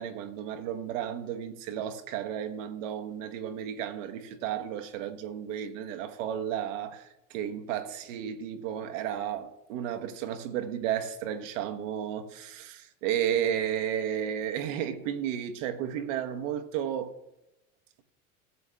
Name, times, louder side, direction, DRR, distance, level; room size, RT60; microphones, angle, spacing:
voice 1, 0.0-17.1, right 9 dB, 70° right, 1.3 m, -33 dB
15.5 x 7.0 x 3.4 m
hypercardioid pair, 100°, 40 cm